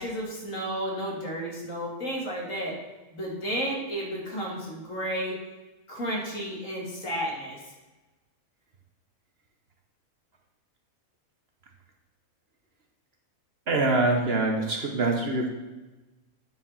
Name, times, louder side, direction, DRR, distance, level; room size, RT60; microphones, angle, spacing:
voice 1, 0.0-2.7 3.1-5.3 5.9-7.7, equal, 65° left, -3 dB, 2.5 m, -32 dB
voice 2, 13.7-15.5, right 2 dB, 50° right, 2 dB, 1.1 m, -24 dB
9.4 x 4.8 x 5.5 m, 1.1 s
omnidirectional pair, 1.4 m